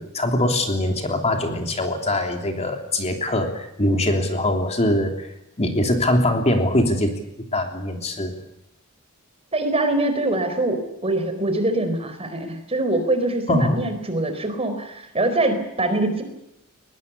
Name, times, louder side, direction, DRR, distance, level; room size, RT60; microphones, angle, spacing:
voice 1, 0.0-5.3 5.6-7.1 7.5-8.3 13.5-13.8, left 1 dB, 30° left, 4 dB, 3.2 m, -22 dB
voice 2, 9.5-16.2, right 2 dB, 25° right, 8 dB, 4.3 m, -23 dB
22.0 x 21.5 x 8.3 m, 0.86 s
head